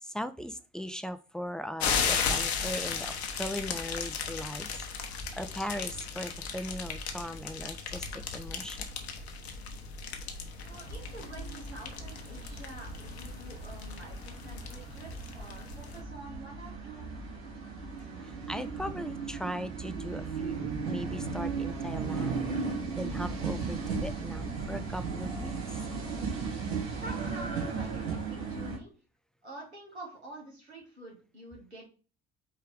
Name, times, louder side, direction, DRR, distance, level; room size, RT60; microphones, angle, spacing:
voice 1, 0.0-8.9 18.2-22.5 22.9-25.8, equal, ahead, 10 dB, 0.3 m, -39 dB
sound 1, 1.8-16.0, left 6 dB, 75° left, 0.8 m, -36 dB
sound 2, 10.6-28.8, right 5 dB, 70° right, 1.5 m, -36 dB
voice 2, 10.6-17.1 27.0-28.9 29.4-31.9, right 1 dB, 90° right, -2 dB, 1.6 m, -47 dB
4.6 x 3.3 x 3.6 m, 0.36 s
figure-of-eight pair, 55°, 32 cm